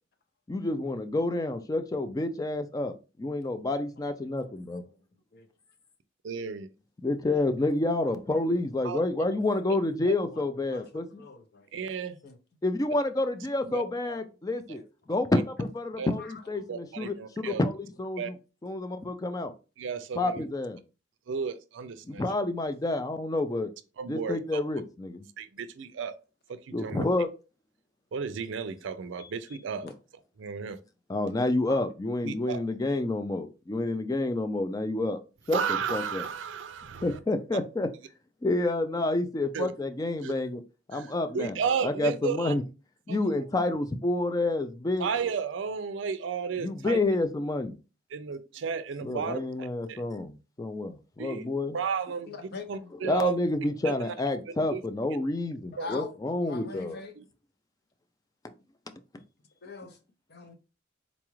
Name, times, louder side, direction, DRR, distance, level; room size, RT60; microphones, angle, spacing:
voice 1, 0.5-4.8 7.0-11.2 12.6-14.8 15.1-18.3 18.6-19.5 20.1-20.8 22.1-23.7 24.1-25.3 26.7-27.3 29.8-29.9 31.1-35.2 35.5-36.2 37.0-37.9 38.4-40.6 40.9-41.6 41.8-42.6 43.1-45.1 46.6-47.8 49.0-51.8 53.0-57.0, left 2 dB, 20° left, 0.3 m, -29 dB
voice 2, 6.2-6.7 8.8-9.0 10.0-10.1 11.7-12.2 13.6-13.8 14.7-14.8 15.1-15.4 16.0-16.1 16.7-17.6 18.2-18.3 19.8-20.4 21.3-22.2 24.0-24.6 25.4-26.1 26.5-27.0 28.1-29.9 30.4-30.8 32.2-32.6 35.5-37.2 39.5-39.7 40.2-40.3 40.9-42.5 43.1-43.4 45.0-47.0 48.1-50.0 51.2-51.5 51.7-53.4 53.8-54.1 54.7-54.8 55.8-55.9 57.2-57.3, right 6 dB, 70° right, 0.4 m, -33 dB
voice 3, 7.3-7.7 9.5-9.7 10.3-10.4 10.7-11.7 12.2-12.4 14.7-14.8 16.2-16.4 29.2-29.3 31.7-31.8 52.3-52.9 55.7-56.1 56.4-57.1 59.6-60.0 60.3-60.6, left 4 dB, 55° left, 0.6 m, -42 dB
4.0 x 2.4 x 3.0 m
head